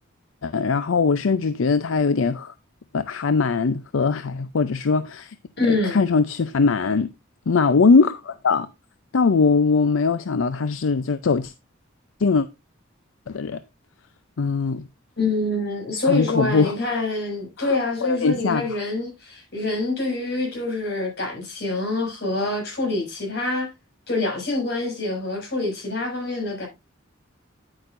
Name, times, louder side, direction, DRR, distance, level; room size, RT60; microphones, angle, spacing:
voice 1, 0.4-2.5 2.9-5.3 5.7-7.1 7.5-8.7 9.1-11.5 12.2-12.5 13.3-13.6 14.4-14.9 16.1-16.7 17.6-17.8 18.0-18.7, left 4 dB, 80° left, 0.5 m, -21 dB
voice 2, 5.6-6.0 15.2-23.7 24.1-26.7, left 2 dB, 55° left, 6.4 m, -26 dB
9.9 x 8.8 x 2.5 m
head